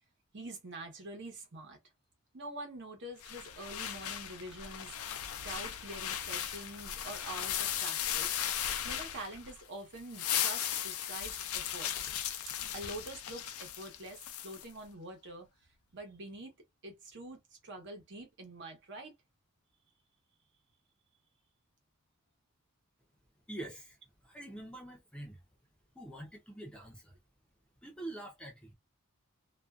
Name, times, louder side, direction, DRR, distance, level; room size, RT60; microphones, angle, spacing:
voice 1, 0.3-1.8 2.3-4.9 5.4-8.3 8.8-11.9 12.4-15.5 15.9-16.5 16.8-19.1, right 2 dB, 55° right, 1.0 m, -46 dB
sound 1, 3.2-9.6 10.0-14.6, left 10 dB, 75° left, 0.4 m, -37 dB
voice 2, 23.5-25.4 25.9-27.2 27.8-28.7, right 1 dB, 5° left, 0.5 m, -45 dB
2.5 x 2.3 x 2.3 m
head